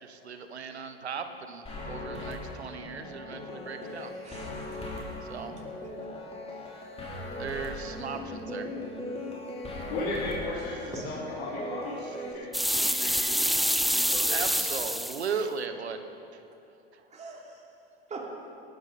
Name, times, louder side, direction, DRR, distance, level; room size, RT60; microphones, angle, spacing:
voice 1, 0.0-4.1 5.3-5.6 7.4-8.7 12.6-12.7 14.3-16.0 16.3-16.4 16.9-17.0, right 5 dB, 90° right, 8 dB, 1.2 m, -37 dB
sound 1, 1.7-12.3, left 1 dB, 20° left, 3.6 m, -38 dB
voice 2, 4.2-4.8 5.5-6.1 10.9-11.1 17.1-17.6 18.1-18.2, right 3 dB, 20° right, -1 dB, 3.0 m, -44 dB
voice 3, 9.9-13.5 13.9-14.4, left 2 dB, 70° left, -9 dB, 4.3 m, -36 dB
sound 2, 12.5-15.3, equal, ahead, 0.3 m, -26 dB
18.5 x 13.0 x 4.3 m, 2.6 s
hypercardioid pair, 90°, 32 cm